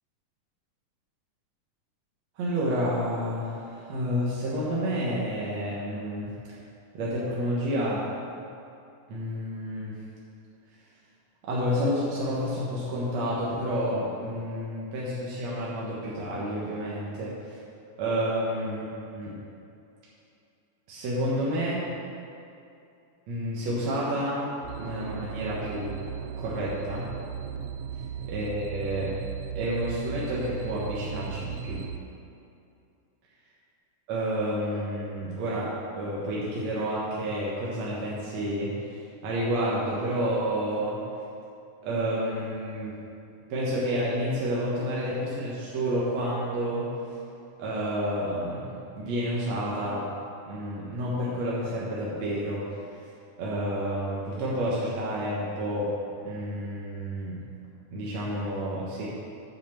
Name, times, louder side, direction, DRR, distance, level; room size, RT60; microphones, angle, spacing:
voice 1, 2.4-6.3 6.9-8.1 9.1-10.0 11.4-17.6 18.0-18.9 19.1-19.3 20.9-21.8 23.3-26.0 26.4-27.1 28.3-29.2 29.6-31.8 34.1-41.0 41.8-42.9 43.5-46.9 47.6-50.1 50.5-52.7 53.4-55.9 56.2-57.4 57.9-59.1, equal, 65° right, -6 dB, 2.4 m, -30 dB
sound 1, 24.6-32.0, right 8 dB, 85° right, 1.5 m, -36 dB
7.9 x 7.0 x 7.3 m, 2.6 s
omnidirectional pair, 3.6 m